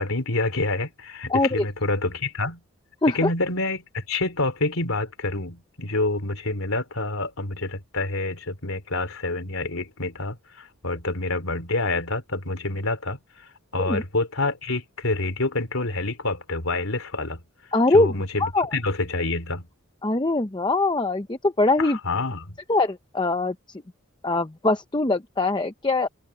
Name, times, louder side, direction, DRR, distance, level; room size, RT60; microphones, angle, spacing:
voice 1, 0.0-2.6 3.1-13.2 13.7-17.4 17.9-19.7 21.8-22.6, left 2 dB, 80° left, 3.3 m, -27 dB
voice 2, 1.3-1.6 3.0-3.3 13.8-14.0 17.7-18.1 18.4-18.7 20.0-22.0 22.7-23.5 24.2-26.1, left 2 dB, 20° left, 0.7 m, -22 dB
open air
head